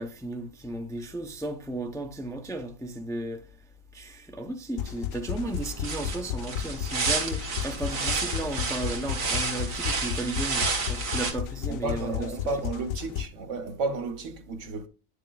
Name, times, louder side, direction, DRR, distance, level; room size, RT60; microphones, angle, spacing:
voice 1, 0.0-3.4 3.9-12.3, right 1 dB, 5° left, 0.6 m, -34 dB
sound 1, 4.8-13.3, left 10 dB, 85° left, 1.0 m, -34 dB
sound 2, 5.3-11.3, right 4 dB, 90° right, 1.8 m, -31 dB
voice 2, 11.7-14.9, right 3 dB, 65° right, 1.3 m, -32 dB
9.5 x 6.4 x 2.3 m
omnidirectional pair, 1.4 m